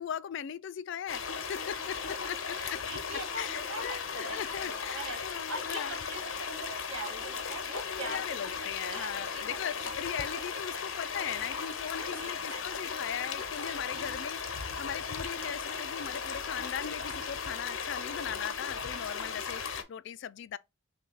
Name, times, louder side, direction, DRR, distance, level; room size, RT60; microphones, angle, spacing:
voice 1, 0.0-2.8 3.4-5.9 7.9-20.6, left 9 dB, 65° left, 0.3 m, -39 dB
sound 1, 1.1-19.8, left 6 dB, 85° left, 0.8 m, -36 dB
voice 2, 2.5-8.5 8.8-9.4 11.2-11.6 11.9-12.8 13.7-13.8, right 2 dB, 70° right, 2.2 m, -43 dB
6.0 x 2.3 x 3.8 m
head